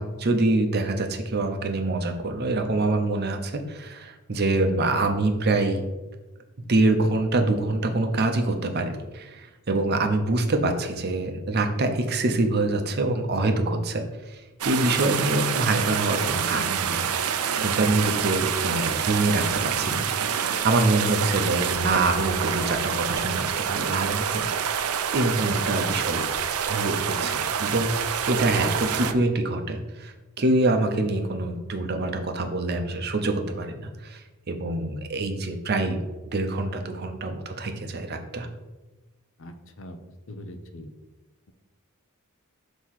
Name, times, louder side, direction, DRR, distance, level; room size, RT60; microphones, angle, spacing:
voice 1, 0.0-5.9 6.6-17.1 17.6-20.3 20.6-24.5 25.1-26.3 26.6-36.1 36.3-38.5, right 2 dB, 45° right, 6 dB, 0.7 m, -25 dB
sound 1, 14.6-29.1, right 8 dB, 85° right, 0.5 m, -27 dB
voice 2, 39.4-40.0 40.3-40.9, left 1 dB, 60° left, 8 dB, 0.6 m, -41 dB
6.4 x 3.0 x 5.6 m, 1.1 s
head